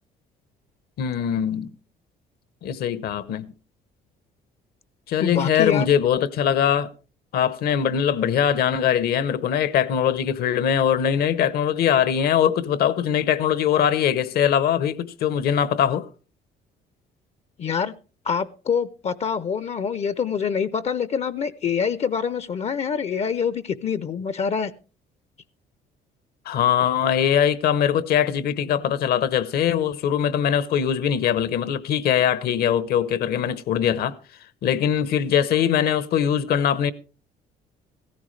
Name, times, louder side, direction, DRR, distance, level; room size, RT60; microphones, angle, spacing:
voice 1, 1.0-1.7 2.6-3.5 5.1-6.9 7.3-16.1 26.5-34.1 34.6-36.9, left 9 dB, 65° left, 0.9 m, -22 dB
voice 2, 5.2-5.9 17.6-17.9 18.2-24.7, left 6 dB, 40° left, 0.5 m, -25 dB
16.0 x 14.0 x 3.2 m
cardioid pair, 110°, 17 cm